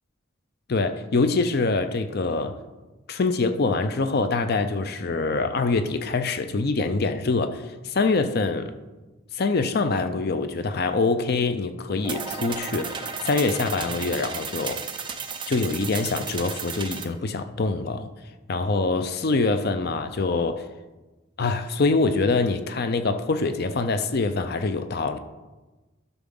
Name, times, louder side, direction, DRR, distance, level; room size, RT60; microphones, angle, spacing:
voice 1, 0.7-2.6 3.1-8.7 9.3-14.8 15.5-18.1 18.5-20.7 21.4-25.2, left 3 dB, 45° left, 9 dB, 0.5 m, -24 dB
sound 1, 12.0-17.0, right 6 dB, 25° right, 0.6 m, -34 dB
12.0 x 6.0 x 3.8 m, 1.2 s
head